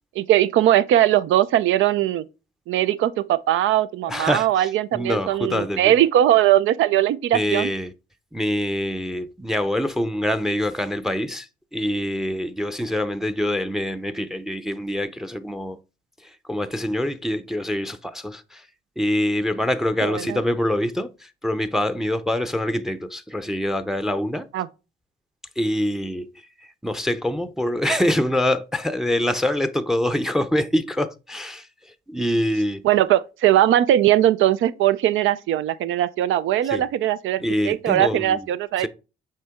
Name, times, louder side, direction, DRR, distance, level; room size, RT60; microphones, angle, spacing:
voice 1, 0.2-2.2 2.7-7.7 20.0-20.4 24.5-24.7 32.8-38.9, right 12 dB, 80° right, 0.5 m, -20 dB
voice 2, 4.1-5.9 7.3-7.9 8.3-15.8 16.2-18.6 19.0-24.5 25.6-26.3 26.8-31.7 32.1-32.8 36.7-36.8 37.4-38.4 38.8-38.9, left 1 dB, ahead, 0.5 m, -25 dB
6.5 x 4.4 x 3.5 m
cardioid pair, 90°, 20 cm